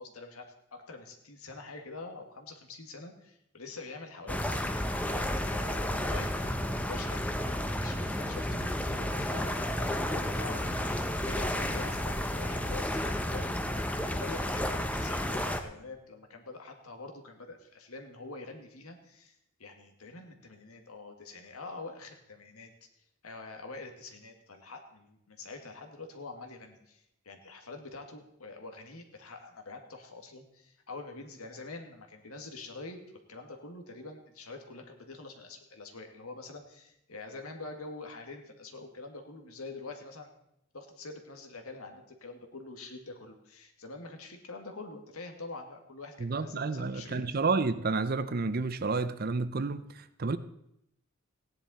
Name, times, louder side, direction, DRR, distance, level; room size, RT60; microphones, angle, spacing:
voice 1, 0.0-4.4 4.7-13.6 14.2-22.7 23.2-40.3 40.7-47.2, left 3 dB, 90° left, 1.9 m, -45 dB
sound 1, 4.3-15.6, left 1 dB, 5° left, 0.7 m, -32 dB
voice 2, 46.2-50.4, right 4 dB, 45° right, 0.6 m, -30 dB
16.0 x 10.5 x 4.2 m
head